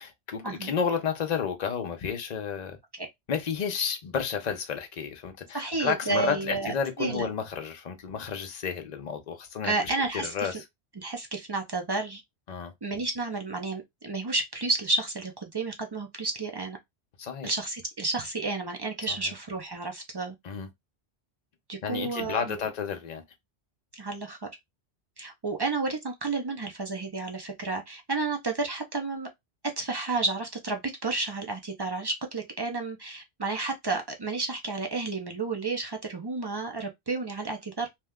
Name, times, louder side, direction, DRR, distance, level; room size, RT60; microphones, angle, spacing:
voice 1, 0.0-2.8 3.3-9.7 10.1-10.6 12.5-12.7 17.2-17.5 19.1-19.3 20.4-20.7 21.8-23.2, left 7 dB, 45° left, 0.6 m, -31 dB
voice 2, 5.5-7.3 9.6-10.5 11.0-12.2 12.8-16.8 17.4-20.3 21.7-22.6 23.9-24.4 25.2-29.3 29.8-37.9, right 3 dB, 45° right, 0.3 m, -31 dB
2.8 x 2.1 x 3.5 m
omnidirectional pair, 1.1 m